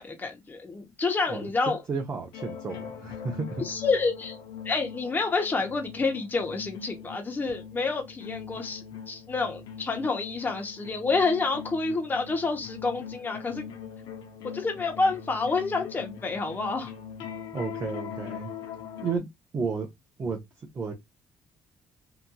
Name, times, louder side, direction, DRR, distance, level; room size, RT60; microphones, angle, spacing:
voice 1, 0.0-1.8 3.6-4.3 4.6-13.6 14.4-16.9, left 3 dB, 25° left, 0.9 m, -28 dB
voice 2, 1.9-3.6 17.5-18.5 19.0-19.3 19.5-19.9 20.2-20.4 20.7-20.9, right 4 dB, 35° right, 0.8 m, -32 dB
sound 1, 2.3-19.2, left 7 dB, 85° left, 0.7 m, -41 dB
2.9 x 2.5 x 2.3 m
cardioid pair, 105°, 8 cm